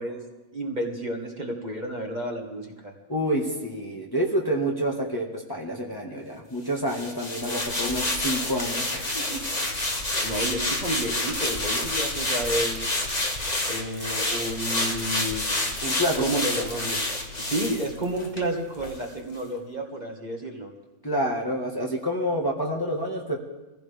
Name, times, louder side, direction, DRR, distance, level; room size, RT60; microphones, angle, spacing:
voice 1, 0.0-2.9 10.2-13.0 13.7-15.4 16.1-17.1 17.4-20.7, right 1 dB, 35° right, 1 dB, 1.9 m, -31 dB
voice 2, 3.1-9.4 15.8-16.4 21.0-23.4, equal, 20° left, -1 dB, 1.7 m, -28 dB
sound 1, 6.9-18.5 18.8-19.0, left 2 dB, 35° left, 1.8 m, -28 dB
23.0 x 15.5 x 3.5 m, 1.1 s
omnidirectional pair, 1.3 m